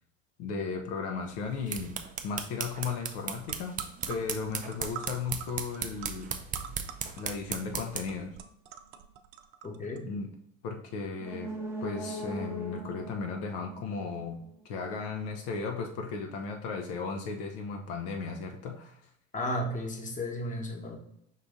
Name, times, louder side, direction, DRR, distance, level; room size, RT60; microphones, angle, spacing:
voice 1, 0.4-3.8 4.1-6.4 7.2-8.4 10.0-10.3 10.6-11.5 11.8-19.0, left 4 dB, 60° left, 4 dB, 0.8 m, -35 dB
sound 1, 1.4-8.2, right 7 dB, 20° right, 0.5 m, -37 dB
sound 2, 3.1-3.2 3.4-10.0, right 9 dB, 65° right, 0.6 m, -46 dB
voice 2, 9.6-10.1 19.3-21.0, left 1 dB, 20° left, 2 dB, 1.1 m, -34 dB
sound 3, 11.1-14.8 15.2-15.3, equal, 5° right, 0.9 m, -40 dB
5.6 x 2.6 x 3.6 m, 0.72 s
hypercardioid pair, 85°, 39 cm